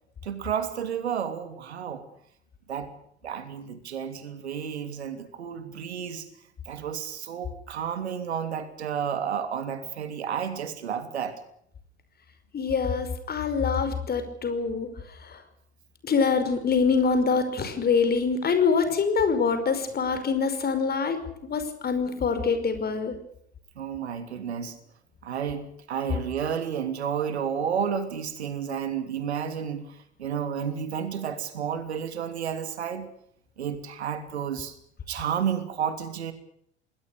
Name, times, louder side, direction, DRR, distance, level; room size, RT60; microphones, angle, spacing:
voice 1, 0.2-2.1 2.7-2.9 3.2-6.3 6.7-11.4 23.8-24.8 25.2-33.1 33.6-34.7 35.1-36.3, right 8 dB, 70° right, 3.1 m, -31 dB
voice 2, 12.5-14.9 15.2-15.4 16.0-23.2, left 5 dB, 30° left, 5.5 m, -25 dB
27.5 x 20.0 x 6.6 m
figure-of-eight pair, 75°, 34 cm